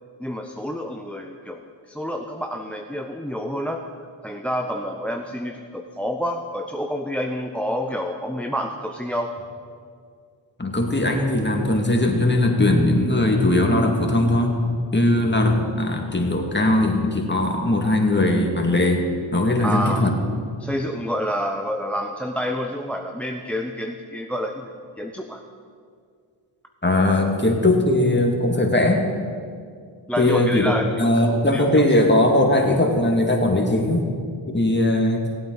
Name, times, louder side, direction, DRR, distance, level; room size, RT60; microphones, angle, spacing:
voice 1, 0.2-3.8 4.2-9.3 19.6-20.1 20.6-25.4 30.1-31.8, equal, 5° left, 4 dB, 0.8 m, -28 dB
voice 2, 10.6-14.6 14.9-19.0 19.3-20.2 26.8-29.0 30.2-30.7 31.0-34.1 34.5-35.2, left 1 dB, 20° left, 1 dB, 2.2 m, -19 dB
18.5 x 8.6 x 4.0 m, 2.2 s
cardioid pair, 45°, 50 cm